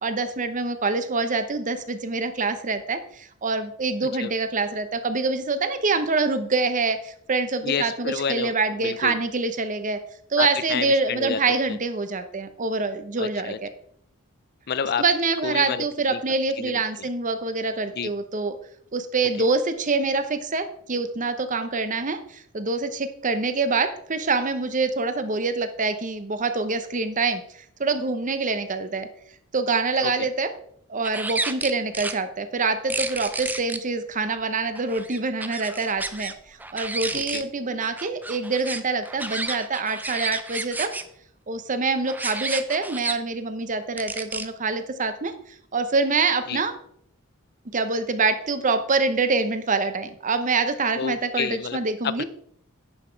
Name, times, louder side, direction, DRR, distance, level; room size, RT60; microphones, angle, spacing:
voice 1, 0.0-10.0 10.3-13.7 15.0-18.5 18.9-29.1 29.5-30.5 30.9-40.9 41.5-45.3 45.7-46.7 47.7-52.2, right 3 dB, 35° right, 10 dB, 0.7 m, -25 dB
voice 2, 7.6-8.5 8.8-9.2 10.4-11.8 13.2-13.6 14.7-15.0 15.4-16.2 16.6-16.7 17.9-18.1 19.4-19.5 30.0-30.3 37.1-37.4 46.5-46.6 51.0-51.8 52.0-52.2, left 6 dB, 45° left, 15 dB, 0.5 m, -29 dB
sound 1, 31.0-32.2 32.9-33.8 34.7-36.3 36.6-37.4 37.8-41.0 42.1-43.1 44.0-44.5, right 3 dB, 10° right, 0.4 m, -31 dB
9.8 x 5.8 x 4.6 m, 0.65 s
head